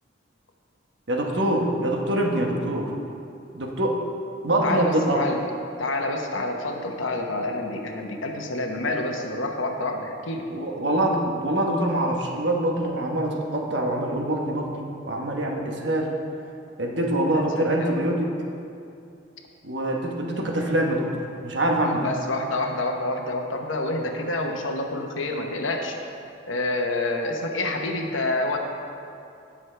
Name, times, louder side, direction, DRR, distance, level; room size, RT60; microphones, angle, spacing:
voice 1, 1.1-2.9 3.5-4.0 4.4-5.2 10.5-16.1 16.8-18.3 19.6-21.1 21.4-22.1, right 1 dB, 60° right, 0 dB, 1.2 m, -24 dB
voice 2, 4.6-5.4 5.8-10.5 17.6-18.0 21.9-26.0 26.5-28.6, left 2 dB, 75° left, 2 dB, 1.0 m, -28 dB
17.0 x 6.3 x 3.4 m, 2.6 s
head